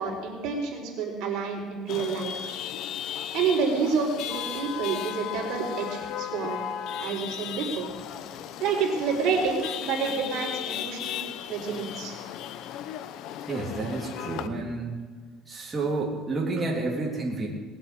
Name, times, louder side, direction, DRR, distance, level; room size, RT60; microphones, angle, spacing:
voice 1, 0.0-2.5 3.3-6.6 7.0-7.9 8.6-11.2 11.5-12.2, right 5 dB, 65° right, 0 dB, 4.3 m, -28 dB
Chatter / Vehicle horn car horn honking / Traffic noise roadway noise, 1.9-14.5, left 10 dB, 60° left, 0.8 m, -36 dB
voice 2, 13.5-14.9 15.5-17.5, right 3 dB, 15° right, -4 dB, 3.3 m, -30 dB
19.5 x 7.8 x 8.8 m, 1.5 s
cardioid pair, 145°, 0 cm